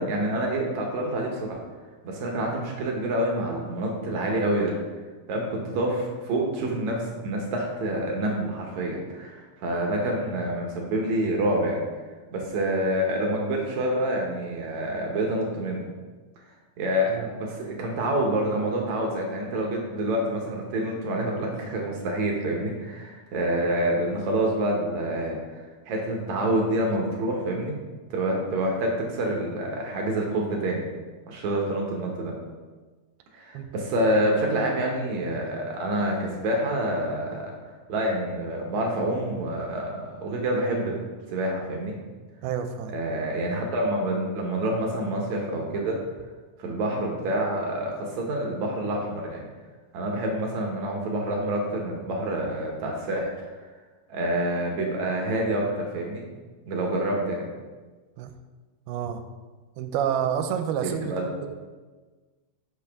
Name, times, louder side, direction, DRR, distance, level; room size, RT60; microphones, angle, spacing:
voice 1, 0.0-1.6 2.0-4.8 5.3-11.8 12.3-15.9 16.8-25.4 25.9-27.7 28.1-30.8 31.3-32.3 33.3-41.0 41.3-42.0 42.9-46.0 46.6-49.5 49.9-53.5 54.1-56.2 56.7-57.5 60.8-61.3, right 1 dB, 70° right, 0 dB, 1.8 m, -27 dB
voice 2, 42.4-43.0 58.2-58.3 58.9-59.2 59.8-61.5, right 9 dB, 85° right, 8 dB, 2.5 m, -29 dB
10.0 x 5.9 x 3.5 m, 1.3 s
omnidirectional pair, 4.5 m